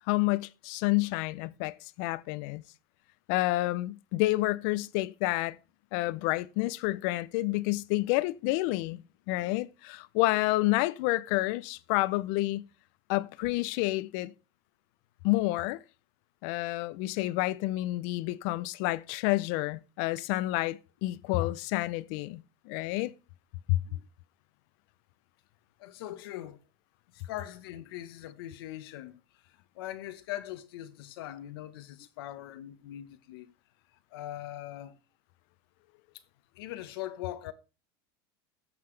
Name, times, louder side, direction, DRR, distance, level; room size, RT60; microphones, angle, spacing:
voice 1, 0.1-2.6 3.3-5.6 5.9-9.0 9.3-12.6 13.1-14.3 15.2-15.8 16.4-23.1 23.7-23.8, left 19 dB, 60° left, 0.5 m, -29 dB
voice 2, 25.8-26.6 27.1-33.5 34.1-35.0 36.5-37.5, left 13 dB, 85° left, 1.0 m, -41 dB
14.5 x 5.8 x 3.3 m
supercardioid pair, 150°, 12 cm